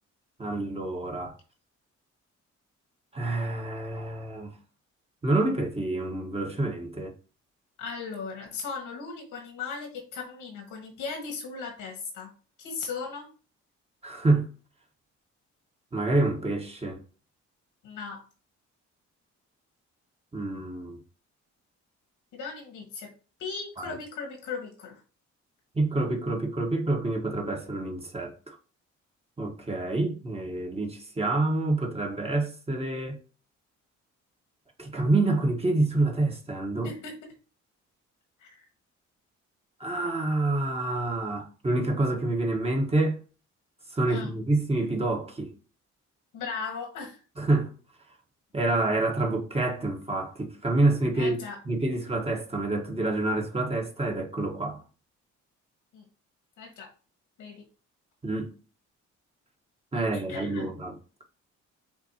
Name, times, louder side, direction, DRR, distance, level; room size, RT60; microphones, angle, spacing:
voice 1, 0.4-1.3 3.1-4.5 5.2-7.1 14.0-14.5 15.9-17.0 20.3-21.0 23.8-23.9 25.7-28.6 29.4-33.2 34.8-36.9 39.8-43.2 43.9-45.5 47.4-47.7 48.5-51.4 51.6-54.8 58.2-58.5 59.9-60.9, right 2 dB, 20° right, 1.3 m, -27 dB
voice 2, 7.8-12.3 12.6-13.3 17.8-18.2 22.3-23.1 23.4-25.0 36.8-37.3 38.4-38.7 44.1-44.3 46.3-47.2 51.1-51.6 55.9-56.0 56.6-56.9 57.4-57.6 59.9-60.7, left 5 dB, 90° left, 1.7 m, -37 dB
6.9 x 2.7 x 2.9 m
cardioid pair, 90°, 30 cm